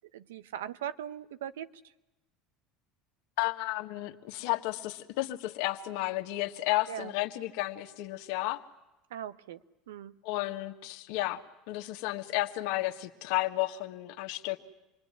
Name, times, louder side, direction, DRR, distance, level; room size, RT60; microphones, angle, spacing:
voice 1, 0.1-1.7 6.9-7.1 9.1-9.6 9.9-10.2, right 10 dB, 90° right, 13 dB, 0.9 m, -39 dB
voice 2, 3.4-8.6 10.2-11.4 11.7-14.6, left 17 dB, 75° left, 6 dB, 1.6 m, -32 dB
27.0 x 21.0 x 9.8 m, 0.99 s
supercardioid pair, 95°, 0 cm